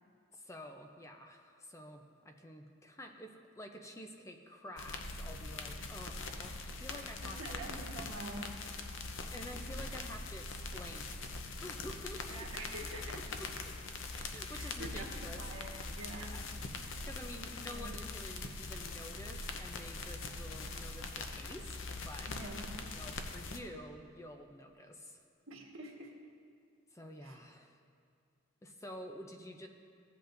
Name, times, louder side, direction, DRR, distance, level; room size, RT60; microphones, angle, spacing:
voice 1, 0.3-7.6 9.3-12.5 13.6-13.7 14.1-15.4 16.3-16.4 17.0-22.3 22.9-25.2 26.9-27.8 28.6-29.7, left 1 dB, 15° left, 4 dB, 0.5 m, -49 dB
sound 1, 4.8-23.6, left 3 dB, 70° left, 0.6 m, -42 dB
voice 2, 7.2-8.7 12.3-13.2 14.5-16.4 17.7-17.9 22.3-22.8 25.5-26.1 27.2-27.4, right 2 dB, 90° right, -1 dB, 1.4 m, -46 dB
15.5 x 7.9 x 2.6 m, 2.3 s
head